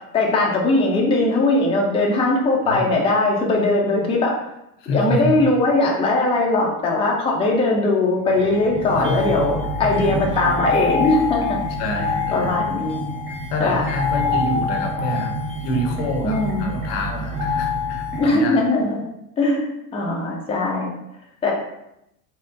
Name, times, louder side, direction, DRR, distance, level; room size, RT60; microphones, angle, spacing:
voice 1, 0.1-4.3 4.9-11.6 12.3-13.0 13.6-13.9 16.2-16.7 18.2-19.0 19.4-20.9 21.4-21.5, left 2 dB, 10° left, -2 dB, 0.5 m, -20 dB
voice 2, 4.8-5.3 9.1-9.2 9.8-10.1 11.8-12.5 13.5-15.3 15.6-18.6, left 1 dB, 65° left, 2 dB, 0.8 m, -27 dB
sound 1, 8.3-18.2, left 2 dB, 25° right, 0.8 m, -26 dB
4.1 x 2.1 x 2.5 m, 0.83 s
hypercardioid pair, 75°, 50 cm